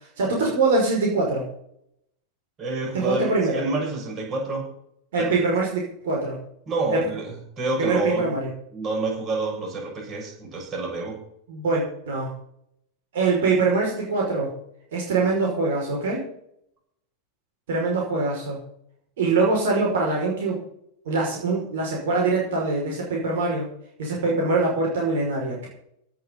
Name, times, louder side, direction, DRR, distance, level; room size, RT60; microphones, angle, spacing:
voice 1, 0.2-1.4 2.9-3.6 5.1-6.4 6.9-7.0 7.8-8.5 11.5-12.3 13.1-14.5 14.9-16.2 17.7-18.6 19.2-20.6 21.1-23.7 24.0-25.7, right 3 dB, 55° right, -2 dB, 5.4 m, -23 dB
voice 2, 2.6-4.7 5.2-5.3 6.7-8.4 8.7-11.2, right 2 dB, 30° right, 0 dB, 7.1 m, -28 dB
18.0 x 6.8 x 7.2 m, 0.72 s
figure-of-eight pair, 90°, 0 cm